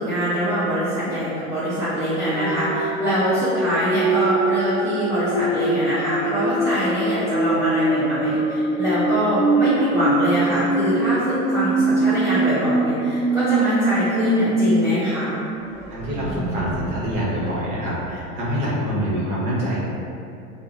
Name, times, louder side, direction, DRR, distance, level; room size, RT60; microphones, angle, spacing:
voice 1, 0.0-15.3, equal, 5° right, -14 dB, 0.5 m, -23 dB
sound 1, 2.3-14.8 15.2-15.3 15.6-18.3, right 2 dB, 25° right, 1.0 m, -23 dB
voice 2, 15.9-19.8, equal, 50° right, -7 dB, 0.9 m, -25 dB
2.5 x 2.0 x 2.4 m, 2.5 s
hypercardioid pair, 95°, 43 cm